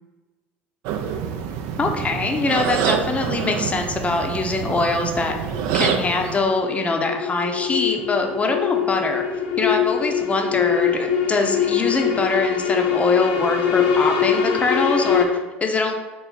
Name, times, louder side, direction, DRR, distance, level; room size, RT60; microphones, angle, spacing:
sound 1, 0.8-6.4, right 7 dB, 60° right, 0.4 m, -26 dB
voice 1, 1.8-5.4 5.7-9.2 9.6-15.9, left 3 dB, 20° left, 3 dB, 0.6 m, -23 dB
sound 2, 4.9-15.2, left 8 dB, 65° left, 0.5 m, -23 dB
3.8 x 2.1 x 4.1 m, 1.2 s
hypercardioid pair, 75°, 6 cm